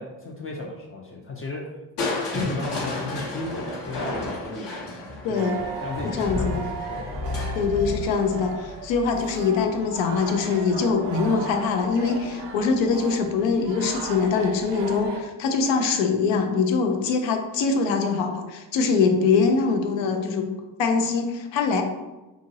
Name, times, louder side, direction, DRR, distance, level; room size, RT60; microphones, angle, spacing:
voice 1, 0.0-1.8 2.3-4.7 5.3-6.6 6.9-7.2, left 3 dB, 30° left, 0 dB, 0.4 m, -34 dB
Crushing, 2.0-9.9 11.5-12.0 12.5-12.6, left 2 dB, 65° left, 1.0 m, -32 dB
voice 2, 5.2-5.6 6.0-6.6 7.5-20.5 20.8-21.8, left 5 dB, 85° left, 5 dB, 0.6 m, -23 dB
sound 1, 5.3-15.2, right 4 dB, 70° right, 0.6 m, -36 dB
2.9 x 2.5 x 2.7 m, 1.1 s
cardioid pair, 75°, 44 cm